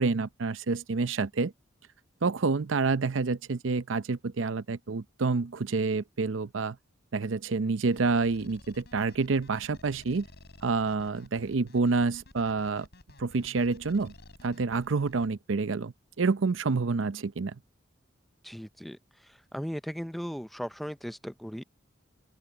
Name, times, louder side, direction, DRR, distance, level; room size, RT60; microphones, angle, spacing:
voice 1, 0.0-1.5 2.2-6.8 7.1-10.3 10.6-12.9 13.2-14.1 14.4-17.6, right 4 dB, 80° right, 0.6 m, -28 dB
sound 1, 7.9-15.3, left 1 dB, 60° left, 6.5 m, -52 dB
voice 2, 18.4-19.0 19.5-21.6, equal, ahead, 0.5 m, -37 dB
open air
head